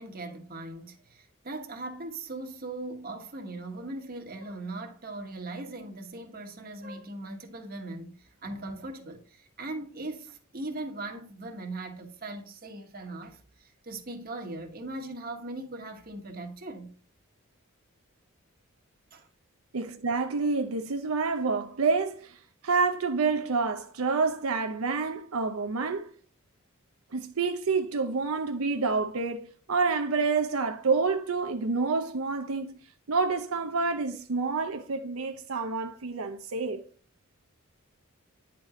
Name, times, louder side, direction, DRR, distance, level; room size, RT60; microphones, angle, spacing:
voice 1, 0.0-16.9 19.1-19.3, right 2 dB, 45° right, 1.3 m, -39 dB
voice 2, 19.7-22.3 22.6-26.1 27.1-32.8 33.1-36.8, right 4 dB, 90° right, 0.7 m, -28 dB
9.7 x 4.5 x 3.8 m
head